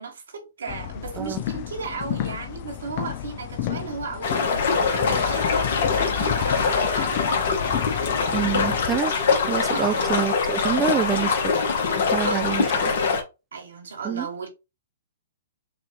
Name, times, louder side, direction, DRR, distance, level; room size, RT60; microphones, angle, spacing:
voice 1, 0.0-7.5 9.7-10.1 12.3-12.6 13.5-14.5, right 5 dB, 80° right, 1.9 m, -35 dB
sound 1, 0.7-9.0, left 12 dB, 45° left, 0.5 m, -32 dB
sound 2, 4.2-13.2, left 5 dB, 60° left, 1.5 m, -23 dB
voice 2, 8.3-9.1 9.5-11.5 12.1-12.9 14.0-14.3, right 9 dB, 20° right, 0.4 m, -27 dB
6.0 x 2.7 x 3.0 m
hypercardioid pair, 130°, 0 cm